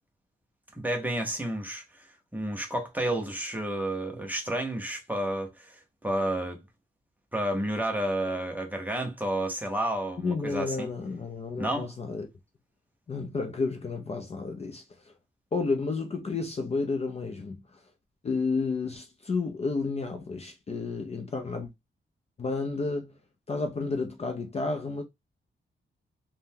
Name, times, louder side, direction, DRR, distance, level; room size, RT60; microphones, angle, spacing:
voice 1, 0.7-2.1 2.3-6.6 7.3-10.9 11.6-11.9, right 1 dB, 10° right, 0.6 m, -31 dB
voice 2, 10.2-12.3 13.1-15.1 15.5-17.6 18.2-21.7 22.4-23.1 23.5-25.0, left 4 dB, 30° left, 0.4 m, -31 dB
3.6 x 2.1 x 2.7 m
wide cardioid pair, 155°, 21 cm